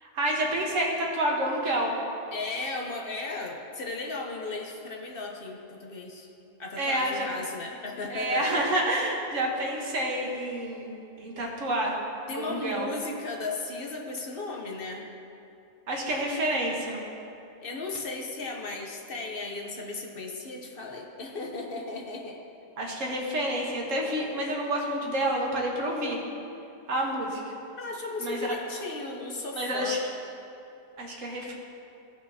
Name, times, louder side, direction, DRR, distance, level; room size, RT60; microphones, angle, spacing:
voice 1, 0.0-2.0 6.8-7.3 8.1-12.0 12.3-12.9 15.9-17.0 22.8-26.2 26.9-27.5 28.2-28.5 29.6-30.0 31.0-31.5, right 1 dB, 85° right, -1 dB, 1.6 m, -29 dB
voice 2, 2.3-6.3 6.6-8.5 12.3-15.1 17.6-22.4 27.8-30.0, left 3 dB, 50° left, 1 dB, 0.9 m, -35 dB
16.0 x 5.9 x 2.7 m, 2.7 s
omnidirectional pair, 1.3 m